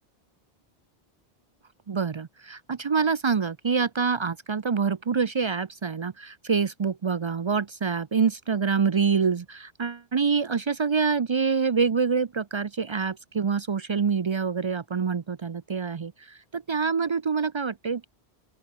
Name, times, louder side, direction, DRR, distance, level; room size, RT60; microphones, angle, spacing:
voice 1, 1.9-18.1, right 5 dB, 45° right, 0.4 m, -26 dB
open air
omnidirectional pair, 1.1 m